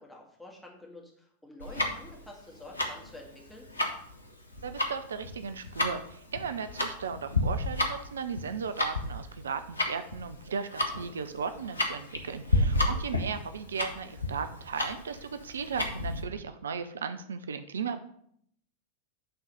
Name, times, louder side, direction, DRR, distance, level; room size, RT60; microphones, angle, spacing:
voice 1, 0.0-3.7 12.5-13.0, left 2 dB, 5° left, -2 dB, 2.0 m, -49 dB
Tick-tock, 1.6-16.2, left 2 dB, 80° left, 1.1 m, -32 dB
voice 2, 4.6-18.0, right 6 dB, 65° right, 10 dB, 0.5 m, -36 dB
9.0 x 3.9 x 5.6 m, 0.68 s
figure-of-eight pair, 90°, 0 cm